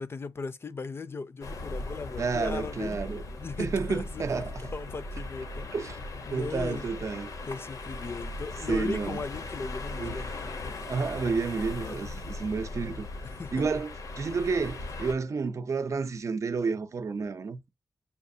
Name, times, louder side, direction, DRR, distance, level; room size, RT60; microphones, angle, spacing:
voice 1, 0.0-3.0 3.4-5.7 6.3-6.9 7.5-10.3 11.8-12.1 13.2-13.7, left 4 dB, 45° left, 0.5 m, -38 dB
sound 1, 1.4-15.1, left 2 dB, 80° left, 0.9 m, -38 dB
voice 2, 2.2-3.2 3.6-4.6 5.7-6.0 6.3-7.3 8.7-9.2 10.0-10.2 10.9-13.1 13.5-17.7, right 4 dB, 60° right, 0.6 m, -30 dB
7.0 x 2.4 x 2.7 m
wide cardioid pair, 105°, 6 cm